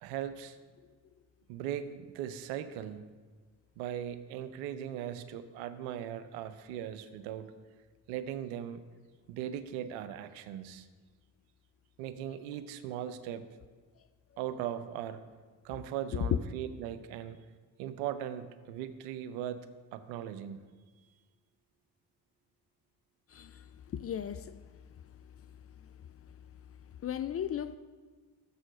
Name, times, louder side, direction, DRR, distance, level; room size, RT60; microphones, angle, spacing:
voice 1, 0.0-0.6 1.5-3.0 3.8-7.5 8.1-8.8 9.3-10.9 12.0-13.5 14.4-15.2 15.6-17.4 17.8-19.7 19.9-20.6, right 10 dB, 75° right, 11 dB, 0.7 m, -39 dB
voice 2, 23.3-23.6 23.9-24.5 27.0-27.8, left 10 dB, 30° left, 12 dB, 0.4 m, -33 dB
6.8 x 6.3 x 6.3 m, 1.4 s
hypercardioid pair, 40°, 50 cm